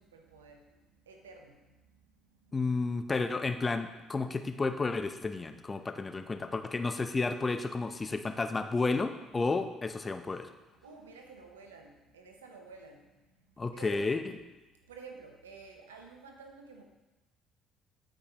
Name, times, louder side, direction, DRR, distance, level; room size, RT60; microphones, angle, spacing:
voice 1, 0.0-2.6 6.2-6.6 10.8-14.0 14.8-16.8, right 4 dB, 90° right, 3 dB, 0.8 m, -52 dB
voice 2, 2.5-10.5 13.6-14.2, left 3 dB, 30° left, 8 dB, 0.7 m, -32 dB
12.5 x 5.3 x 3.0 m, 1.1 s
hypercardioid pair, 55°, 0 cm